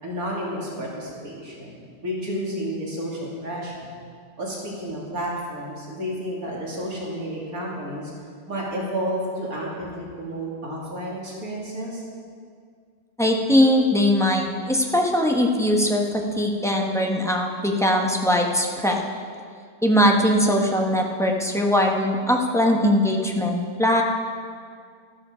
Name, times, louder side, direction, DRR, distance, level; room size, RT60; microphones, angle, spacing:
voice 1, 0.0-3.9 4.4-8.1 8.5-12.0, equal, 80° right, -4 dB, 3.1 m, -31 dB
voice 2, 13.2-16.0 16.4-19.0 19.8-24.0, left 1 dB, ahead, 0 dB, 1.0 m, -20 dB
13.5 x 12.5 x 5.0 m, 2.1 s
omnidirectional pair, 1.5 m